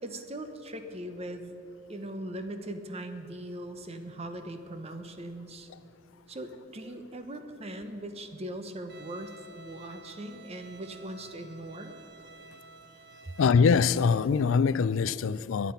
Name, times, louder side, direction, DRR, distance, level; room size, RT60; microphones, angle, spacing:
voice 1, 0.0-1.5 1.9-5.7 6.3-11.9 13.2-13.3, right 1 dB, 30° right, 7 dB, 0.9 m, -40 dB
Bowed string instrument, 8.9-13.9, right 2 dB, 65° right, 1.0 m, -51 dB
voice 2, 13.4-15.7, left 5 dB, 85° left, 17 dB, 0.4 m, -23 dB
21.0 x 8.4 x 5.8 m, 2.8 s
head